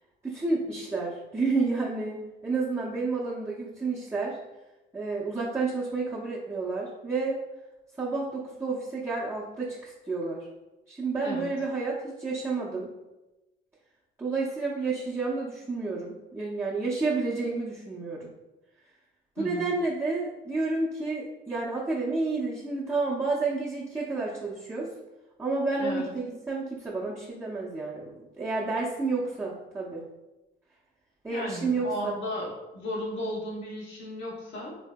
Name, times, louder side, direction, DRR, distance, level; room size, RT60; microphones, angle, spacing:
voice 1, 0.2-4.4 4.9-7.4 8.0-10.5 10.9-12.9 14.2-18.3 19.4-24.9 25.4-30.0 31.2-32.1, right 3 dB, 15° right, -9 dB, 0.6 m, -30 dB
voice 2, 19.4-19.7 25.8-26.1 31.3-34.7, equal, 75° left, -4 dB, 1.0 m, -35 dB
3.1 x 2.7 x 2.2 m, 1.0 s
cardioid pair, 90°, 20 cm